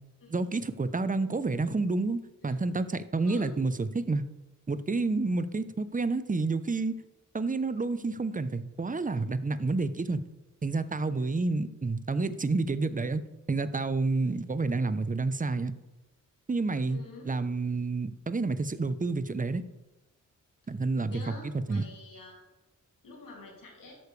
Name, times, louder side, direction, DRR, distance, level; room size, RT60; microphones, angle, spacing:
voice 1, 0.3-4.2 4.7-6.9 7.3-10.2 10.6-13.2 13.5-15.7 16.5-19.6 20.7-21.3 21.7-21.8, right 3 dB, 25° right, 12 dB, 0.7 m, -29 dB
voice 2, 16.9-17.3 21.0-22.4 23.0-23.9, left 3 dB, 90° left, -1 dB, 2.7 m, -47 dB
13.0 x 6.8 x 3.3 m, 1.1 s
cardioid pair, 45°, 32 cm